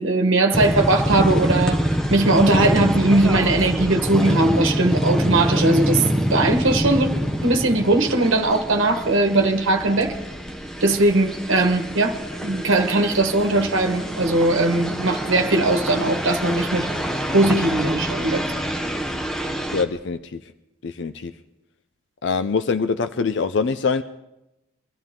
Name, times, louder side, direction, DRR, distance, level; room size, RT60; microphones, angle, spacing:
voice 1, 0.0-1.8 2.1-7.1 7.4-10.1 10.8-16.9 17.3-18.4, right 2 dB, 80° right, 1.2 m, -19 dB
sound 1, 0.5-19.8, equal, 5° left, 0.9 m, -26 dB
voice 2, 19.7-20.5 20.8-21.3 22.2-24.0, left 5 dB, 60° left, 0.4 m, -24 dB
24.0 x 13.0 x 3.7 m
head